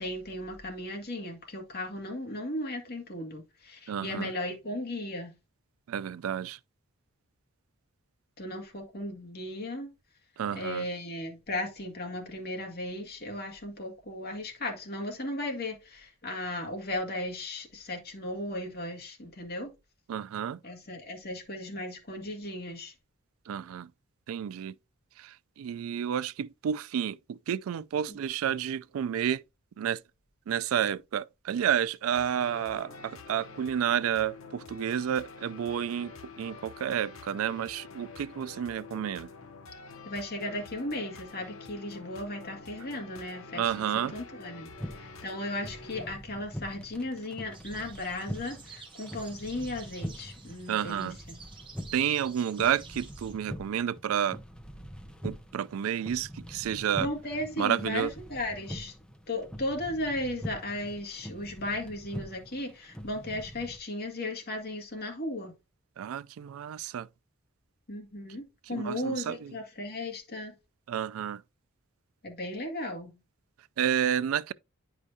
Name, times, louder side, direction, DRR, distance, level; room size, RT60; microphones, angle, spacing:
voice 1, 0.0-5.4 8.4-9.9 10.5-19.7 20.6-22.9 28.1-28.2 40.1-51.4 57.0-58.9 59.3-65.5 67.9-70.5 72.2-73.2, left 1 dB, 50° left, 1.9 m, -36 dB
voice 2, 3.9-4.3 5.9-6.6 10.4-10.9 20.1-20.6 23.5-23.9 24.3-24.7 25.2-29.4 29.8-30.0 30.5-39.3 43.5-44.2 50.7-51.2 51.9-54.4 55.2-57.1 57.6-58.1 66.0-67.1 68.7-69.6 70.9-71.4 73.8-74.5, right 9 dB, 90° right, 0.3 m, -30 dB
sound 1, 32.1-46.1, left 4 dB, 90° left, 1.0 m, -47 dB
sound 2, 44.7-63.8, equal, 5° left, 0.7 m, -44 dB
sound 3, 47.5-53.3, right 5 dB, 25° right, 1.3 m, -51 dB
9.8 x 4.9 x 2.7 m
head